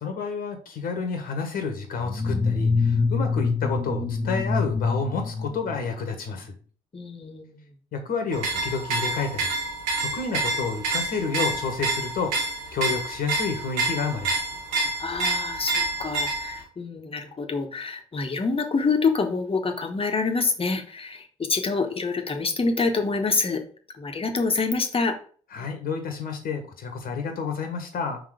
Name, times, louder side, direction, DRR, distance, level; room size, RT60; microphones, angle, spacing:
voice 1, 0.0-6.5 7.9-9.5 10.0-12.4 12.7-14.4 25.5-28.2, left 5 dB, 55° left, 5 dB, 1.3 m, -30 dB
sound 1, 2.0-6.1, left 4 dB, 15° left, 1.1 m, -25 dB
voice 2, 6.9-7.6 15.0-23.6 24.0-25.2, left 4 dB, 30° left, 4 dB, 1.2 m, -26 dB
sound 2, 8.3-16.6, right 2 dB, 75° right, 1.3 m, -28 dB
5.5 x 3.8 x 5.0 m, 0.43 s
figure-of-eight pair, 45°, 18 cm